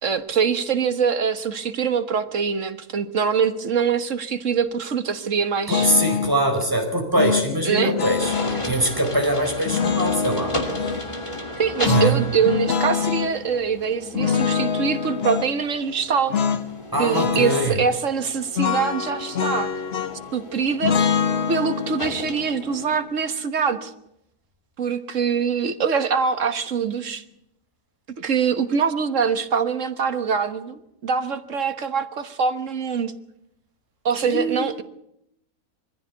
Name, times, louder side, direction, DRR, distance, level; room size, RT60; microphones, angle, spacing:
voice 1, 0.0-5.9 7.6-7.9 11.6-16.4 17.0-19.7 20.3-21.0 21.5-23.9 24.8-27.2 28.2-33.1 34.0-34.8, right 6 dB, 55° right, 10 dB, 1.6 m, -24 dB
sound 1, 5.7-6.4 7.2-8.6 9.6-11.0 11.8-13.3 14.1-15.5 16.3-16.7 16.9-17.7 18.6-20.3 20.8-23.9, left 6 dB, 45° left, 1.2 m, -25 dB
voice 2, 5.7-10.5 11.9-12.2 16.9-17.8 34.2-34.6, right 1 dB, 15° right, 3 dB, 4.5 m, -23 dB
sound 2, 8.2-22.9, left 1 dB, 20° left, 2.8 m, -35 dB
23.0 x 15.0 x 8.3 m, 0.78 s
omnidirectional pair, 1.6 m